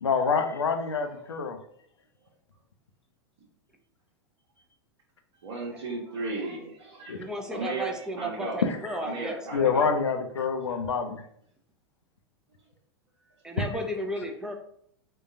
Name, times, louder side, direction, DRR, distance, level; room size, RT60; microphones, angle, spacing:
voice 1, 0.0-1.6 7.1-7.2 8.7-8.8 9.5-11.2 13.6-13.7, left 5 dB, 90° left, 6 dB, 0.5 m, -26 dB
voice 2, 5.4-8.6 9.0-9.9 10.6-10.8, right 3 dB, 70° right, -6 dB, 1.0 m, -35 dB
voice 3, 7.1-9.7 13.4-14.5, equal, 5° right, 2 dB, 0.5 m, -34 dB
3.7 x 2.3 x 2.7 m, 0.67 s
hypercardioid pair, 100°, 14 cm